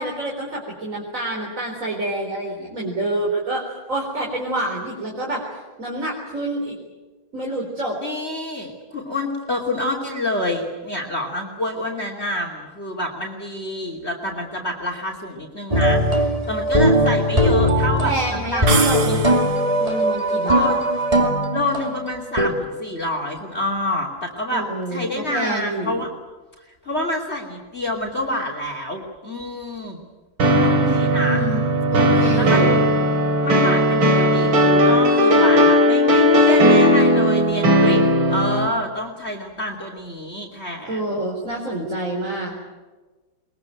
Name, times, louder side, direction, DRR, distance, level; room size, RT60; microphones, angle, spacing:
voice 1, 0.0-5.4 5.8-6.8 7.3-8.0 18.0-19.4 19.8-20.6 24.5-26.0 30.6-31.7 31.9-32.8 40.9-42.5, right 1 dB, 40° right, -2 dB, 4.3 m, -27 dB
voice 2, 8.0-19.3 20.5-20.8 21.5-26.1 26.8-30.0 30.6-31.4 32.3-32.6 33.4-41.2, left 1 dB, 30° left, 2 dB, 3.1 m, -27 dB
sound 1, 15.7-22.5, equal, 20° right, 2.8 m, -19 dB
sound 2, 18.7-19.8, right 5 dB, 70° right, 2.8 m, -25 dB
sound 3, 30.4-38.7, equal, 85° right, 3.2 m, -16 dB
22.5 x 22.0 x 9.2 m, 1.3 s
omnidirectional pair, 2.1 m